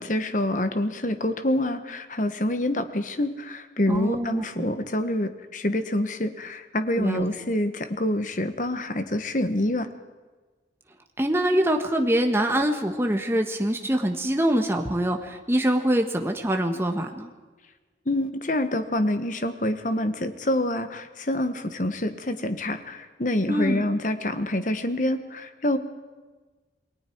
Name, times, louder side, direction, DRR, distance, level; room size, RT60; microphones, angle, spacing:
voice 1, 0.0-9.9 18.1-25.8, left 1 dB, 45° left, 9 dB, 1.3 m, -26 dB
voice 2, 3.9-4.7 7.0-7.3 11.2-17.3 23.5-23.8, right 1 dB, 15° right, 4 dB, 1.4 m, -24 dB
28.0 x 20.5 x 4.6 m, 1.3 s
head